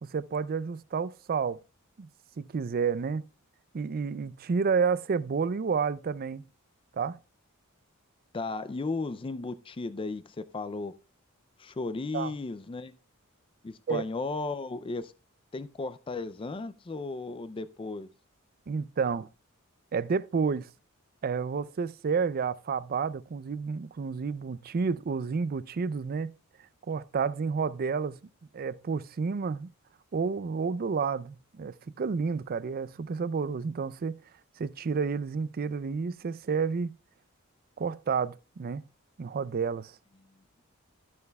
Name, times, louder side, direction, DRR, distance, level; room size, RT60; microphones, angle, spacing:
voice 1, 0.0-1.6 2.0-2.1 2.4-3.2 3.7-6.4 6.9-7.2 12.1-12.3 13.9-14.0 18.7-19.3 19.9-20.7 21.2-26.3 26.9-28.2 28.5-29.7 30.1-34.2 34.6-36.9 37.8-38.8 39.2-39.9, right 5 dB, 45° right, 0.4 m, -30 dB
voice 2, 8.3-10.9 11.6-12.9 13.6-15.1 15.5-18.1, left 3 dB, 25° left, 0.4 m, -35 dB
12.0 x 9.5 x 2.3 m
head